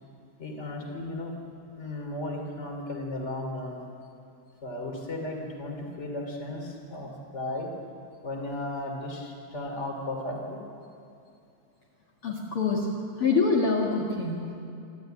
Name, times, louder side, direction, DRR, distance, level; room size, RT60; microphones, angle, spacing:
voice 1, 0.4-1.3 1.8-3.8 4.6-7.7 8.2-10.6, left 1 dB, 20° left, 2 dB, 2.5 m, -35 dB
voice 2, 12.2-12.9 13.2-14.7, left 4 dB, 55° left, -4 dB, 1.6 m, -25 dB
28.0 x 13.5 x 9.1 m, 2.5 s
omnidirectional pair, 5.4 m